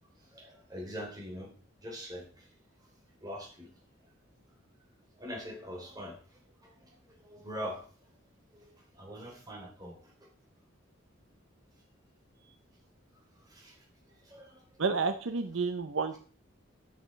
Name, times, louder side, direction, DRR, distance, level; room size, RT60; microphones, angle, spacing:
voice 1, 0.2-1.5 1.8-2.5 3.2-3.7 5.2-7.8 8.5-10.1 13.4-13.8 14.2-14.6, equal, 20° right, -1 dB, 3.2 m, -43 dB
voice 2, 14.8-16.2, right 4 dB, 70° right, 8 dB, 0.7 m, -30 dB
10.5 x 6.1 x 5.2 m, 0.43 s
head